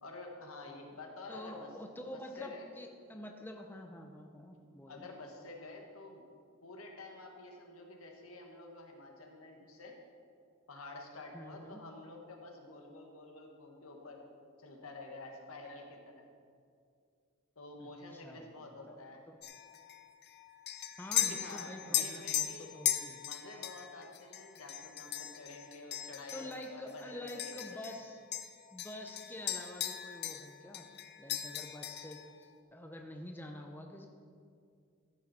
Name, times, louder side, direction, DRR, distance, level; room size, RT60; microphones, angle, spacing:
voice 1, 0.0-1.7 2.1-2.7 4.9-6.2 6.6-9.9 10.7-14.2 14.6-16.2 17.5-19.2 21.2-22.7 23.2-27.8, left 2 dB, 90° left, 2 dB, 1.5 m, -49 dB
voice 2, 1.3-5.1 11.3-11.8 17.8-18.6 18.9-19.0 19.3-19.4 21.0-23.2 26.3-28.2 28.7-30.9 31.2-34.1, left 1 dB, 10° left, 3 dB, 0.7 m, -47 dB
sound 1, 19.4-28.0 28.3-30.5 30.7-32.2, left 11 dB, 50° left, 0.6 m, -38 dB
14.0 x 7.1 x 4.2 m, 2.3 s
head